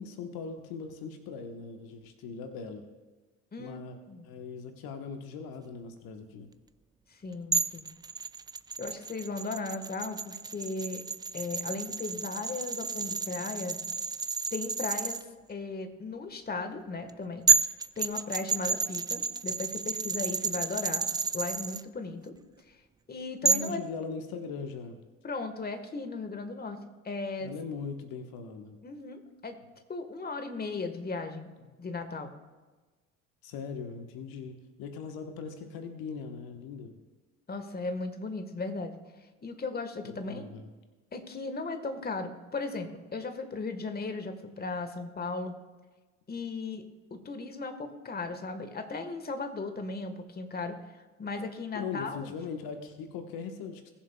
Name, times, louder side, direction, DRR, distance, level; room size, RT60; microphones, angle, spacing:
voice 1, 0.0-2.8 3.6-4.0 4.2-6.5 23.4-25.0 27.4-28.8 33.4-37.0 40.0-40.7 51.7-53.9, left 5 dB, 65° left, 6 dB, 1.3 m, -40 dB
voice 2, 7.1-7.9 8.8-11.0 11.3-13.8 14.5-17.4 18.0-21.0 21.3-22.3 23.1-23.8 25.2-26.8 27.0-27.5 28.8-29.6 29.9-31.5 31.8-32.3 37.5-39.0 39.4-40.5 41.1-45.6 46.3-46.8 47.1-50.8 51.2-52.3, left 3 dB, 25° left, 7 dB, 1.5 m, -36 dB
sound 1, 7.5-15.2 17.1-17.2 17.5-21.8 23.5-23.7, right 4 dB, 10° right, 0.3 m, -30 dB
20.5 x 7.3 x 2.3 m, 1.3 s
hypercardioid pair, 60°, 39 cm